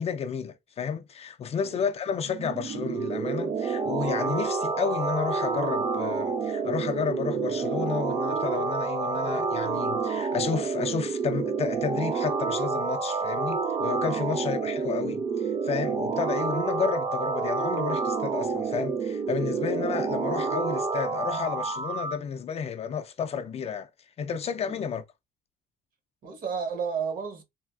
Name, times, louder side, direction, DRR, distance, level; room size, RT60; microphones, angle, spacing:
voice 1, 0.0-23.9 24.2-25.0, left 7 dB, 40° left, 0.4 m, -31 dB
sound 1, 2.3-22.2, right 5 dB, 30° right, 0.5 m, -29 dB
voice 2, 26.2-27.4, right 6 dB, 55° right, 1.0 m, -33 dB
3.3 x 2.3 x 2.3 m
cardioid pair, 110°, 17 cm